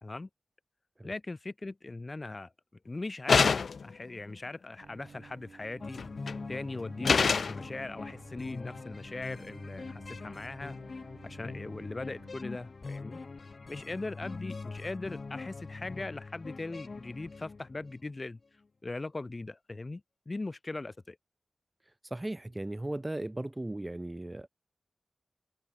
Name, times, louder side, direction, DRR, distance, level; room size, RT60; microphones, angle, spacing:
voice 1, 1.0-2.5 2.8-3.5 3.8-6.0 6.5-10.8 11.2-13.2 13.7-18.4 18.8-20.0 20.3-21.2, left 2 dB, 35° left, 1.2 m, -40 dB
sound 1, 3.3-3.9 6.0-6.3 7.0-7.6, left 5 dB, 90° left, 0.5 m, -24 dB
Bowed string instrument, 4.8-12.3, right 5 dB, 80° right, 5.9 m, -54 dB
sound 2, 5.8-18.1, left 4 dB, 55° left, 0.9 m, -43 dB
voice 2, 22.1-24.5, right 1 dB, 20° right, 1.9 m, -36 dB
wide cardioid pair, 110°, 0 cm